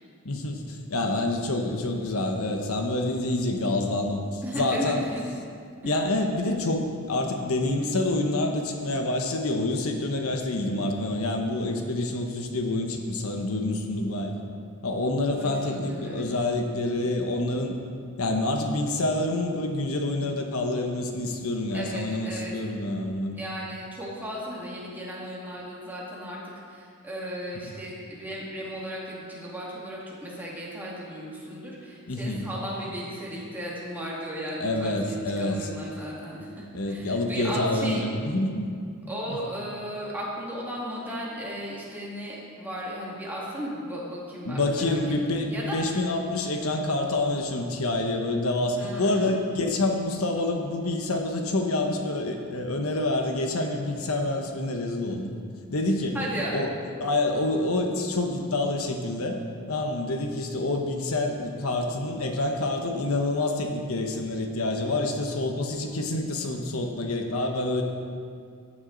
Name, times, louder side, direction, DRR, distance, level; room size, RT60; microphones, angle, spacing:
voice 1, 0.2-5.0 5.8-14.3 14.8-17.7 18.2-23.4 32.1-32.5 34.6-35.7 36.7-38.7 39.3-39.4 44.4-55.3 55.7-56.3 56.5-56.7 57.0-59.4 59.7-67.8, left 2 dB, 75° left, 3 dB, 1.1 m, -27 dB
voice 2, 4.4-5.2 5.8-6.0 15.2-16.3 21.7-22.5 23.4-38.0 39.1-45.0 45.3-45.8 48.8-49.4 56.1-56.6, equal, 10° right, -6 dB, 2.2 m, -35 dB
14.0 x 9.6 x 4.0 m, 2.2 s
head